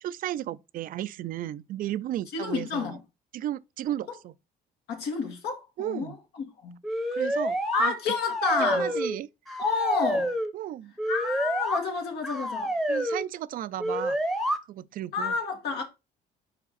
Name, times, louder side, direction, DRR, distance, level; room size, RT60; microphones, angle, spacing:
voice 1, 0.0-2.9 3.3-4.3 5.8-6.2 7.1-7.9 8.6-9.3 10.5-10.9 12.9-14.2 14.7-15.3, right 12 dB, 55° right, 0.4 m, -34 dB
voice 2, 2.3-3.0 4.9-6.8 7.7-8.9 9.6-10.3 11.1-12.7 15.1-15.8, left 5 dB, 75° left, 1.9 m, -29 dB
sound 1, 6.8-7.9 8.2-9.2 9.5-10.5 11.0-11.8 12.2-13.2 13.8-14.6, equal, ahead, 0.9 m, -28 dB
5.0 x 4.8 x 4.0 m
cardioid pair, 110°, 17 cm